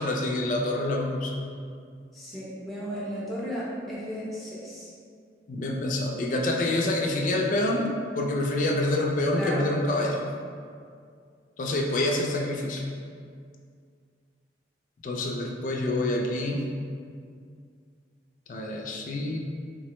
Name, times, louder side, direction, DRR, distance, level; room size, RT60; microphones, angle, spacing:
voice 1, 0.0-1.4 5.5-7.9 8.1-10.2 11.6-12.8 15.0-16.6 18.5-19.4, left 1 dB, 45° left, 0 dB, 0.3 m, -27 dB
voice 2, 2.1-4.9 9.3-9.7, equal, ahead, -8 dB, 0.6 m, -34 dB
3.8 x 2.0 x 2.9 m, 2.2 s
head